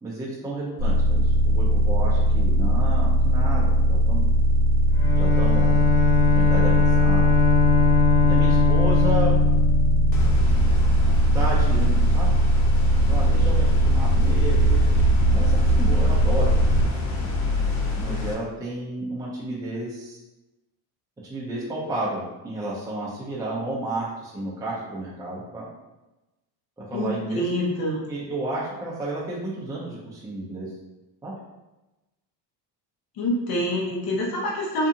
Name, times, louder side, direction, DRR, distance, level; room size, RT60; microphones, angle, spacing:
voice 1, 0.0-4.2 5.1-5.7 6.3-7.3 8.2-9.3 11.3-12.4 13.1-15.0 15.3-16.5 18.0-20.2 21.3-25.7 26.8-27.4 28.1-30.7 31.2-31.3, right 1 dB, 10° right, -7 dB, 0.5 m, -32 dB
sound 1, 0.8-16.8, right 1 dB, 40° right, 0.9 m, -20 dB
Bowed string instrument, 4.9-10.6, left 8 dB, 30° left, 1.2 m, -22 dB
sound 2, 10.1-18.3, equal, 85° left, 0.8 m, -27 dB
voice 2, 26.9-28.0 33.2-34.9, equal, 55° left, -3 dB, 1.0 m, -26 dB
2.7 x 2.5 x 2.4 m, 1.0 s
supercardioid pair, 95°, 45 cm